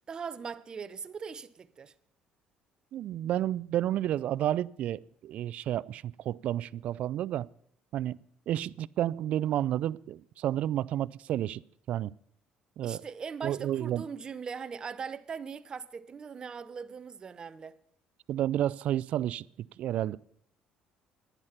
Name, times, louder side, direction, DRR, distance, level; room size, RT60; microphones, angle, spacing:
voice 1, 0.1-1.9 12.8-17.8, right 6 dB, 30° right, 0.7 m, -40 dB
voice 2, 2.9-7.5 7.9-8.2 8.5-11.6 11.9-12.1 12.8-13.0 13.4-14.0 18.3-20.2, right 12 dB, 60° right, 0.4 m, -31 dB
11.0 x 10.5 x 5.7 m
cardioid pair, 115°, 3 cm